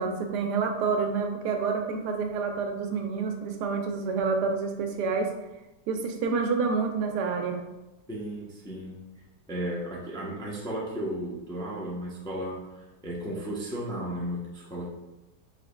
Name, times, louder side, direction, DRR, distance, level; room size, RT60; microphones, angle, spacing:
voice 1, 0.0-5.3 5.9-7.6, right 5 dB, 90° right, 4 dB, 1.2 m, -28 dB
voice 2, 8.1-9.0 9.5-14.9, right 1 dB, 5° left, -5 dB, 0.3 m, -34 dB
5.0 x 4.2 x 2.2 m, 1.0 s
omnidirectional pair, 1.8 m